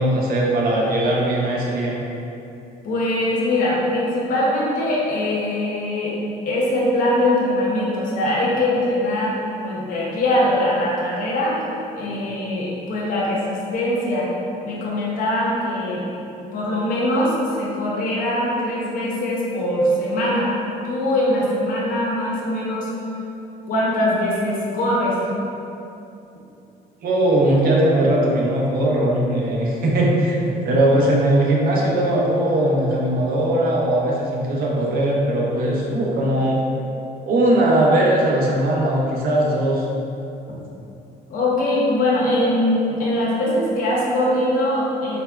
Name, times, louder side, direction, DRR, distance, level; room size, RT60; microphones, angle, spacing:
voice 1, 0.0-2.0 27.0-36.6 37.2-39.9, right 1 dB, 60° right, -2 dB, 0.6 m, -19 dB
voice 2, 2.8-6.2 6.5-11.6 11.9-14.3 14.6-16.1 16.5-20.5 20.8-22.9 23.7-25.2 41.3-45.2, left 1 dB, 55° left, -5 dB, 0.6 m, -22 dB
3.4 x 2.1 x 2.2 m, 2.8 s
cardioid pair, 110°, 17 cm